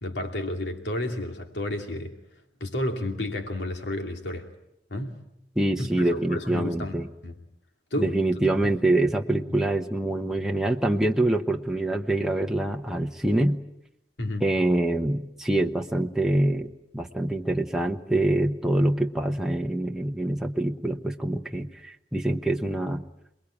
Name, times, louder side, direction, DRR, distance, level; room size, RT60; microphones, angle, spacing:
voice 1, 0.0-2.2 2.6-4.5 4.9-5.1 5.8-7.0 7.2-7.3 7.9-8.2 14.2-14.5, left 1 dB, 80° left, 3 dB, 2.7 m, -31 dB
voice 2, 5.6-7.1 8.0-13.6 14.4-23.0, right 1 dB, 5° right, 2 dB, 1.0 m, -25 dB
28.5 x 21.0 x 8.7 m, 0.84 s
head